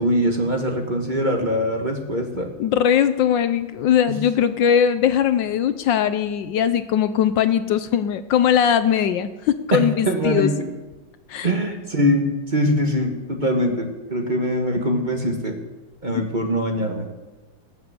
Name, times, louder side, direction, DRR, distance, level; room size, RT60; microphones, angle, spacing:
voice 1, 0.0-2.5 4.1-4.2 9.7-10.7 11.4-15.6 16.0-17.1, equal, 25° right, 3 dB, 1.5 m, -22 dB
voice 2, 2.6-10.5 11.3-11.5 16.1-16.2, left 9 dB, 75° left, 12 dB, 1.3 m, -20 dB
20.0 x 6.9 x 8.0 m, 1.2 s
omnidirectional pair, 2.2 m